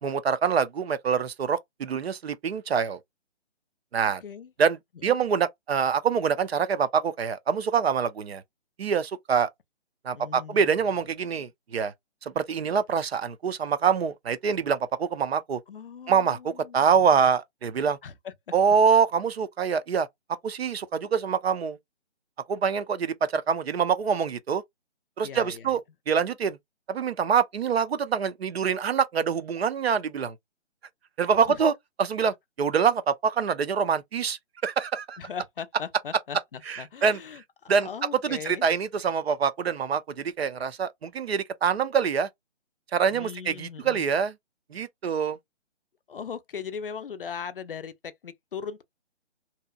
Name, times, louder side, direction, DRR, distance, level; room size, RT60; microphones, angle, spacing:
voice 1, 0.0-3.0 3.9-4.2 4.6-8.4 8.8-9.5 10.0-11.9 12.2-15.6 16.1-18.0 18.5-20.1 20.4-21.8 22.5-24.6 25.2-25.8 26.1-26.6 26.9-30.4 31.2-31.7 32.0-35.2 36.7-37.2 37.7-37.9 38.2-42.3 42.9-44.3 44.7-45.4, right 6 dB, 60° right, 0.5 m, -25 dB
voice 2, 4.2-4.5 5.0-5.2 10.1-10.8 15.7-17.3 18.0-18.3 25.2-25.8 35.2-38.7 43.1-44.0 46.1-48.8, left 7 dB, 50° left, 0.4 m, -39 dB
2.8 x 2.0 x 2.3 m
hypercardioid pair, 160°, 35 cm